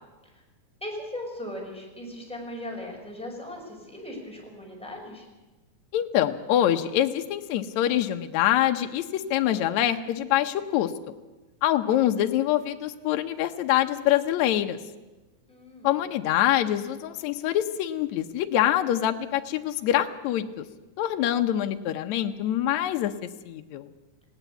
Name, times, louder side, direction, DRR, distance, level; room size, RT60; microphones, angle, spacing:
voice 1, 0.8-5.3 15.5-15.9, left 1 dB, ahead, -1 dB, 5.1 m, -38 dB
voice 2, 5.9-10.9 11.6-14.8 15.8-20.6 21.0-23.1 23.5-23.9, left 12 dB, 75° left, 7 dB, 2.1 m, -25 dB
19.0 x 17.0 x 8.3 m, 1.2 s
omnidirectional pair, 3.4 m